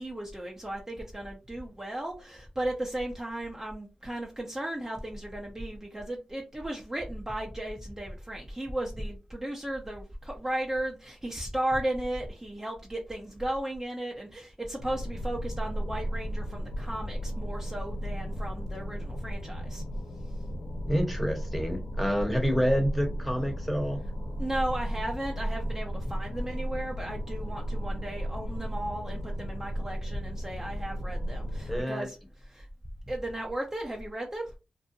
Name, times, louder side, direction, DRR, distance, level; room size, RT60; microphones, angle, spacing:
voice 1, 0.0-19.8 24.4-32.2 32.5-32.7 33.1-34.5, right 1 dB, 20° right, 0.6 m, -35 dB
sound 1, 14.8-31.8, equal, 65° left, 0.5 m, -35 dB
voice 2, 20.9-24.0 31.7-32.1, equal, ahead, 0.9 m, -28 dB
2.6 x 2.1 x 2.6 m
cardioid pair, 45°, 3 cm